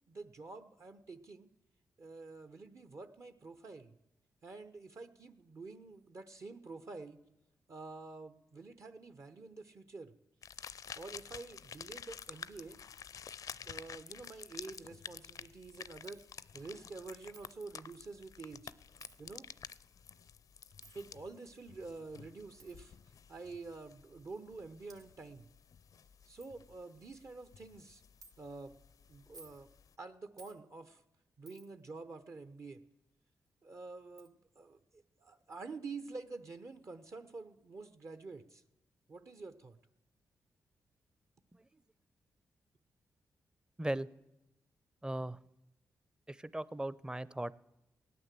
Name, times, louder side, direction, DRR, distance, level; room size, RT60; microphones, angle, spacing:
voice 1, 0.1-1.5 2.0-3.9 4.4-7.2 7.7-10.1 11.0-12.8 13.6-16.2 16.5-18.7 19.2-19.5 20.9-23.0 23.3-25.5 26.2-28.0 28.4-28.7 29.1-29.7 30.0-31.0 31.4-32.8 33.6-38.6 39.1-39.8, right 3 dB, 50° right, 9 dB, 0.9 m, -48 dB
sound 1, 10.4-30.0, left 7 dB, 65° left, 0.5 m, -51 dB
Coin (dropping), 16.0-16.3 17.3-17.7 19.0-19.2 20.8-21.1 22.6-22.8 23.7-23.8 24.5-24.6 24.9-25.0 25.7-25.8 26.0-26.1 26.4-26.5 27.0-27.3 28.2-28.3 29.2-29.6 30.4-30.6 31.5-31.8 33.5-33.6 34.2-34.3, right 4 dB, 75° right, 1.4 m, -58 dB
voice 2, 45.0-45.4 46.3-47.5, right 1 dB, 10° right, 19 dB, 0.6 m, -37 dB
17.0 x 9.7 x 7.6 m, 0.94 s
cardioid pair, 55°, 6 cm